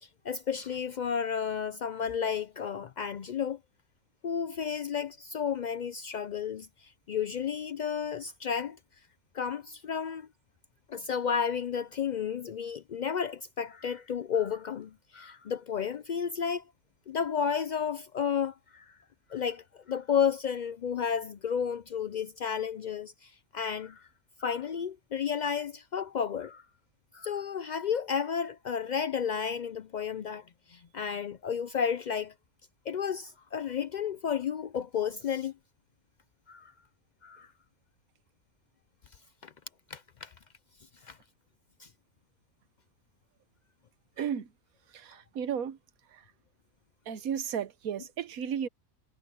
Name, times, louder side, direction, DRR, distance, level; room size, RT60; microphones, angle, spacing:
voice 1, 0.2-3.6 4.2-8.8 9.3-10.3 10.9-16.6 17.1-18.8 19.3-24.0 24.4-26.6 27.1-30.4 30.7-32.3 32.9-35.5 36.5-36.7 37.2-37.5 39.4-39.5 39.9-40.3 41.0-41.2 41.8-41.9, left 7 dB, 90° left, 0.4 m, -32 dB
voice 2, 44.2-44.5 44.9-45.8 47.1-48.7, right 8 dB, 90° right, 1.4 m, -33 dB
omnidirectional pair, 1.4 m